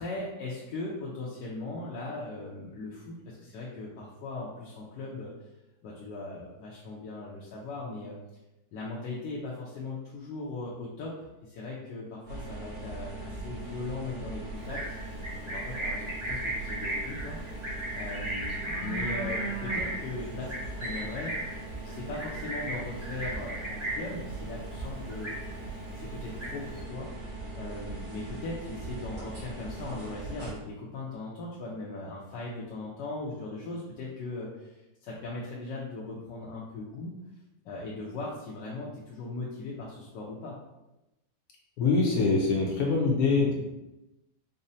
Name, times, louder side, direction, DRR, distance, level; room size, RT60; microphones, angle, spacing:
voice 1, 0.0-5.3 5.8-8.2 8.7-11.2 11.4-15.2 15.5-17.4 17.9-21.6 21.8-25.3 25.9-27.1 27.5-37.2 37.6-40.6, left 2 dB, 85° left, -5 dB, 1.3 m, -39 dB
sound 1, 12.3-30.5, right 2 dB, 85° right, 2.3 m, -40 dB
Livestock farm animals working animals, 14.6-24.2 24.5-24.8 25.1-25.8 26.1-26.8, right 1 dB, 25° right, 0.6 m, -35 dB
voice 2, 41.8-43.5, left 4 dB, 70° left, -1 dB, 1.0 m, -24 dB
5.1 x 2.0 x 2.6 m, 0.96 s
omnidirectional pair, 1.9 m